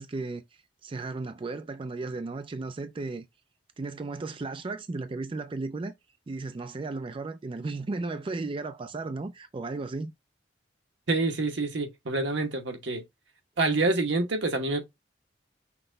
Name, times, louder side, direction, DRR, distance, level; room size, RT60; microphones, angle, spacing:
voice 1, 0.0-3.3 3.8-5.9 6.3-10.1, right 3 dB, 30° right, 0.4 m, -35 dB
voice 2, 11.1-13.0 13.6-14.8, right 2 dB, 90° right, 1.0 m, -27 dB
5.9 x 2.2 x 3.8 m
head